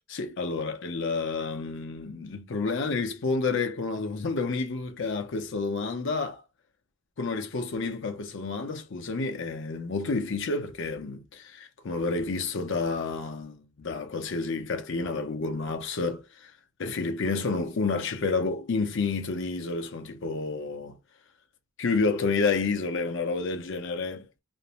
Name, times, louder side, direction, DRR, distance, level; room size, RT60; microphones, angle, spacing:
voice 1, 0.1-6.4 7.2-16.5 16.8-21.0 21.8-24.3, left 4 dB, 60° left, 0.5 m, -30 dB
2.5 x 2.0 x 2.8 m
head